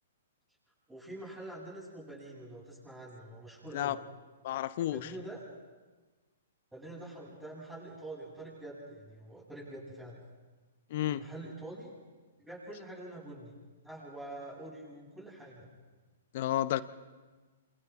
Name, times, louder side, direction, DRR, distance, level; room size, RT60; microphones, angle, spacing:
voice 1, 0.9-4.0 4.9-5.4 6.7-10.2 11.0-11.9 12.4-13.5 13.8-15.7, right 1 dB, 5° right, -6 dB, 7.8 m, -45 dB
voice 2, 4.4-5.1 10.9-11.2 16.3-16.8, left 13 dB, 50° left, 16 dB, 0.8 m, -31 dB
28.0 x 27.5 x 3.7 m, 1.3 s
hypercardioid pair, 120°, 0 cm